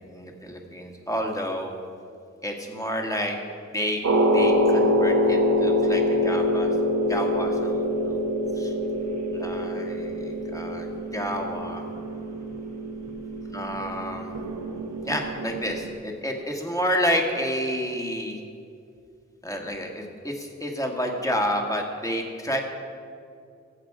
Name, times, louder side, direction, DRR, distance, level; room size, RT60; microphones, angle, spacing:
voice 1, 0.0-1.8 2.4-3.4 3.7-4.0 4.3-6.7 7.1-8.2 8.6-8.7 9.3-11.8 13.5-14.3 15.0-18.4 19.4-22.6, equal, 10° left, 1 dB, 1.9 m, -30 dB
sound 1, 4.0-15.9, left 1 dB, 70° right, 1.2 m, -25 dB
22.5 x 8.1 x 4.9 m, 2.4 s
wide cardioid pair, 95°, 30 cm